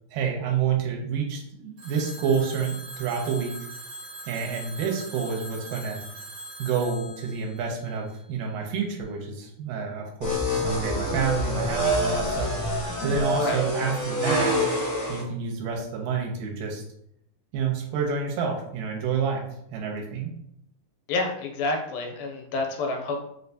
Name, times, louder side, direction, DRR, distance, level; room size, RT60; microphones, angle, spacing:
voice 1, 0.1-3.6 4.3-6.0 6.6-12.5 13.0-14.6 15.1-16.8 17.5-19.4 19.7-20.3, right 6 dB, 85° right, 0 dB, 2.3 m, -28 dB
Telephone, 1.8-8.6, right 2 dB, 65° right, 1.8 m, -42 dB
sound 1, 10.2-15.2, equal, 70° left, 1.1 m, -26 dB
voice 2, 21.1-23.2, left 3 dB, 90° left, 2 dB, 2.5 m, -28 dB
5.4 x 2.2 x 2.6 m, 0.75 s
omnidirectional pair, 3.9 m